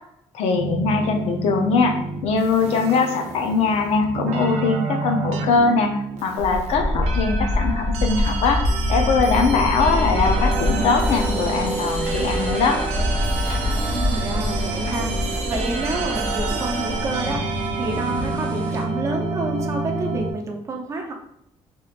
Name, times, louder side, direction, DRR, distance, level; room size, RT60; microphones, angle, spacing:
voice 1, 0.3-12.8, left 4 dB, 70° left, 4 dB, 0.6 m, -21 dB
sound 1, 0.5-20.3, right 4 dB, 80° right, 0.5 m, -29 dB
sound 2, 6.4-17.2, left 1 dB, 50° left, 1.4 m, -25 dB
sound 3, 9.8-18.9, left 1 dB, 15° left, 0.5 m, -34 dB
voice 2, 13.9-17.4 17.7-21.1, right 2 dB, 25° right, 1 dB, 0.7 m, -29 dB
4.5 x 3.7 x 2.5 m, 0.78 s
cardioid pair, 170°, 11 cm